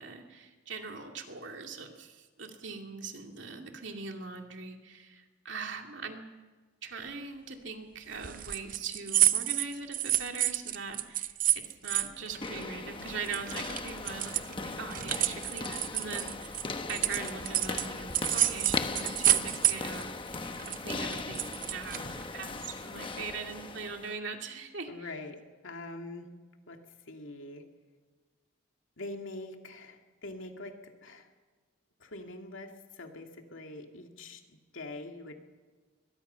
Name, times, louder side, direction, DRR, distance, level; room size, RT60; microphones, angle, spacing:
voice 1, 0.0-6.2 6.8-11.3 11.8-16.6 16.9-20.1 20.8-25.1, right 4 dB, 65° right, 3 dB, 2.4 m, -41 dB
sound 1, 8.2-13.0 13.2-17.9 18.1-20.0 20.3-22.3, right 12 dB, 40° right, 0.6 m, -29 dB
sound 2, 12.2-24.2, left 3 dB, 25° left, 1.1 m, -38 dB
voice 2, 24.9-26.3 26.7-27.7 29.0-31.3 32.0-35.4, left 2 dB, 75° left, 3 dB, 2.4 m, -44 dB
22.0 x 22.0 x 5.7 m, 1.4 s
head